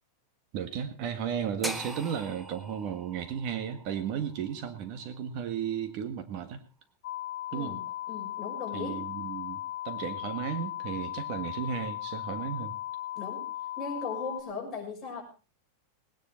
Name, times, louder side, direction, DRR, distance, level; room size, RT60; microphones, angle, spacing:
voice 1, 0.5-6.6 7.5-7.7 8.7-12.8, right 8 dB, 40° right, 9 dB, 1.6 m, -34 dB
sound 1, 1.6-5.7, right 1 dB, 5° right, 0.9 m, -42 dB
sound 2, 7.0-14.4, left 13 dB, 50° left, 2.3 m, -37 dB
voice 2, 7.5-9.0 13.1-13.5 13.8-15.2, left 4 dB, 15° left, -3 dB, 6.0 m, -38 dB
19.0 x 10.0 x 4.4 m, 0.33 s
supercardioid pair, 165°, 0 cm